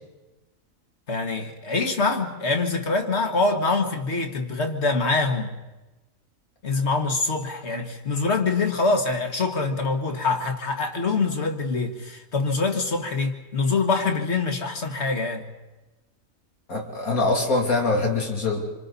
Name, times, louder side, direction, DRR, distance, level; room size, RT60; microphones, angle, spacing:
voice 1, 1.1-5.5 6.6-15.4, left 3 dB, 50° left, 4 dB, 2.1 m, -24 dB
voice 2, 16.7-18.6, left 3 dB, 90° left, 0 dB, 3.4 m, -23 dB
26.5 x 26.5 x 4.1 m, 1.1 s
omnidirectional pair, 1.5 m